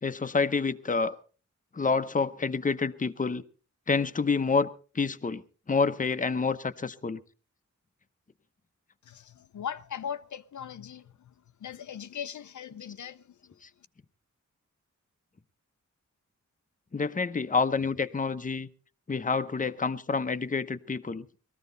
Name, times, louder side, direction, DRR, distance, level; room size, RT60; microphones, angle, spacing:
voice 1, 0.0-1.2 1.7-3.4 3.9-4.7 4.9-7.2 16.9-18.7 19.1-21.3, left 4 dB, 25° left, 0.8 m, -28 dB
voice 2, 9.0-11.3 11.6-13.6, left 8 dB, 75° left, 0.6 m, -39 dB
20.0 x 14.0 x 4.0 m
wide cardioid pair, 130°, 30 cm